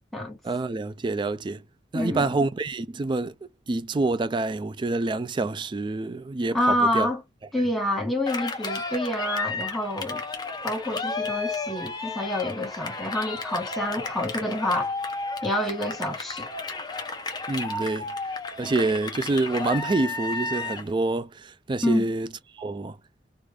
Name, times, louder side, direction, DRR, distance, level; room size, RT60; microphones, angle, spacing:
voice 1, 0.4-1.6 1.9-3.3 3.7-7.1 17.5-18.1 18.6-22.3 22.5-23.0, right 2 dB, 25° right, 0.3 m, -27 dB
voice 2, 1.9-2.3 6.5-7.2 7.5-10.2 10.6-14.9 15.4-16.5 21.8-22.1, left 1 dB, ahead, 1.3 m, -27 dB
Cheering, 8.3-20.9, left 3 dB, 25° left, 0.8 m, -32 dB
3.2 x 2.5 x 3.4 m
head